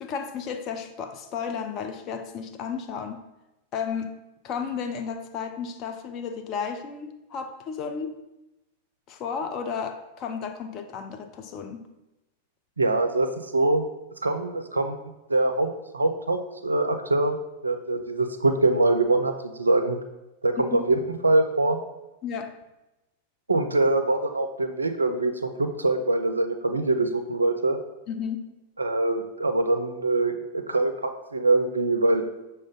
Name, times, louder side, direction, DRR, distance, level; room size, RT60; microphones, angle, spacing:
voice 1, 0.0-3.3 3.7-4.2 4.4-8.1 9.1-11.9 20.7-20.8 22.2-22.5 28.1-28.5, left 6 dB, 35° left, 6 dB, 0.4 m, -33 dB
voice 2, 12.8-13.8 14.2-15.0 15.3-17.3 17.6-20.0 20.4-21.8 23.5-27.8 28.8-32.2, right 2 dB, 80° right, 7 dB, 0.3 m, -24 dB
6.1 x 2.1 x 3.7 m, 0.98 s
figure-of-eight pair, 90°, 0 cm